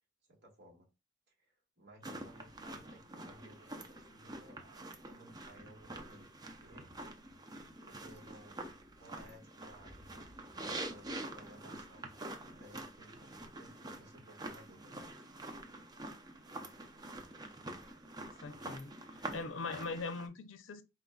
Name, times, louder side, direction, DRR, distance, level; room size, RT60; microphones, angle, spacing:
voice 1, 0.3-0.9 1.4-6.3 6.6-6.9 7.8-8.7 9.0-10.3 10.9-12.1 12.6-15.1, right 1 dB, 60° right, 1.9 m, -58 dB
sound 1, 2.0-20.3, right 2 dB, 20° right, 0.6 m, -47 dB
voice 2, 18.2-20.8, left 3 dB, 90° left, 0.5 m, -42 dB
4.3 x 3.8 x 2.3 m
head